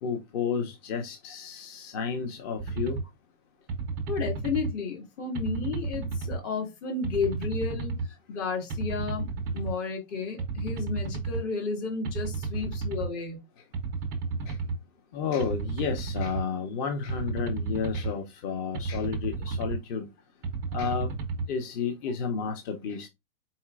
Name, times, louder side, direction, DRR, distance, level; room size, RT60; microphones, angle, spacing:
voice 1, 0.0-3.0 14.5-14.6 15.1-20.1 20.7-21.1 21.5-23.1, left 6 dB, 35° left, 0.6 m, -31 dB
sound 1, 2.6-3.0 3.7-4.7 5.3-6.4 7.0-8.1 8.7-9.7 10.4-11.4 12.0-13.1 13.7-14.8 15.4-16.4 17.1-18.1 18.7-19.8 20.4-21.5, right 4 dB, 15° right, 0.3 m, -32 dB
voice 2, 4.1-13.4, left 5 dB, 55° left, 2.2 m, -32 dB
4.2 x 4.0 x 2.3 m
hypercardioid pair, 140°, 42 cm